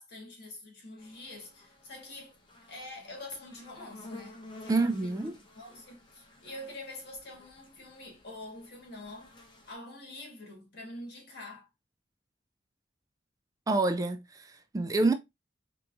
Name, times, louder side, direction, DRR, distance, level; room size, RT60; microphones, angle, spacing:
voice 1, 0.0-2.3 2.7-5.3 5.5-9.3 9.7-11.7, left 2 dB, 60° left, 1.6 m, -46 dB
sound 1, 1.0-9.7, left 2 dB, 25° left, 1.1 m, -52 dB
voice 2, 4.7-5.4 13.7-15.1, right 3 dB, 20° right, 0.4 m, -27 dB
4.6 x 3.0 x 2.5 m
head